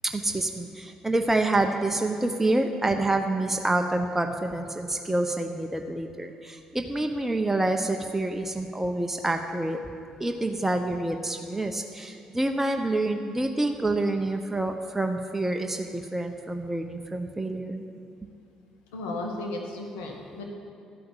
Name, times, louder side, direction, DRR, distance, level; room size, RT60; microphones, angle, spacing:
voice 1, 0.1-9.8 10.2-17.8, right 2 dB, 10° right, 4 dB, 0.8 m, -27 dB
voice 2, 18.9-20.5, left 2 dB, 80° left, 1 dB, 1.4 m, -35 dB
12.5 x 5.7 x 7.2 m, 2.6 s
hypercardioid pair, 55°, 3 cm